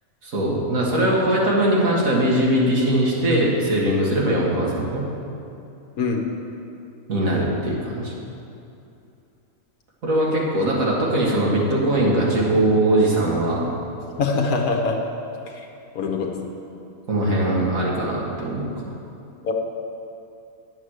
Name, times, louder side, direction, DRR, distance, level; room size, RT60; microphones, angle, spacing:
voice 1, 0.2-5.0 7.1-8.1 10.0-13.7 17.1-18.7, right 1 dB, 65° right, -4 dB, 2.2 m, -21 dB
voice 2, 14.2-15.0 15.9-16.3 19.4-19.5, left 4 dB, 75° left, 2 dB, 1.4 m, -22 dB
9.4 x 7.2 x 6.5 m, 2.7 s
omnidirectional pair, 1.5 m